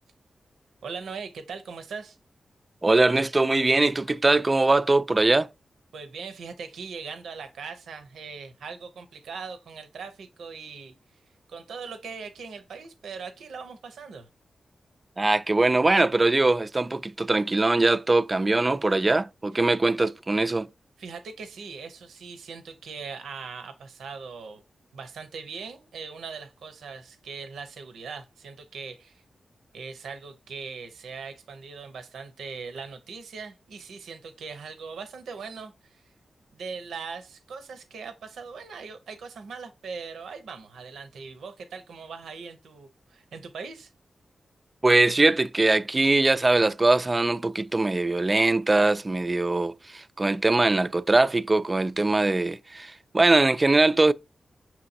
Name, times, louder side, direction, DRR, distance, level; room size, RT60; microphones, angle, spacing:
voice 1, 0.8-2.2 5.9-10.9 11.5-14.3 21.0-24.6 24.9-29.2 29.7-36.0 36.5-43.9, right 5 dB, 90° right, 0.6 m, -40 dB
voice 2, 2.8-5.5 15.2-20.7 44.8-54.1, right 2 dB, 35° right, 0.3 m, -22 dB
5.8 x 2.9 x 2.6 m
cardioid pair, 45°, 0 cm